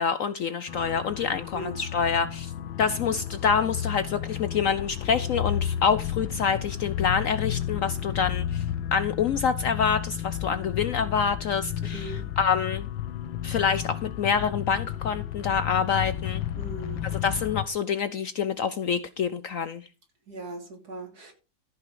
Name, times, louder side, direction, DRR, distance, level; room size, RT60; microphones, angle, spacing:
voice 1, 0.0-2.5 2.8-8.6 8.9-12.9 13.4-16.4 17.2-19.8, left 6 dB, 70° left, 0.7 m, -26 dB
sound 1, 0.7-17.7, left 11 dB, 85° left, 1.6 m, -32 dB
voice 2, 11.9-12.3 16.5-17.3 20.3-21.3, right 2 dB, 50° right, 3.6 m, -39 dB
14.5 x 5.8 x 5.1 m
omnidirectional pair, 2.1 m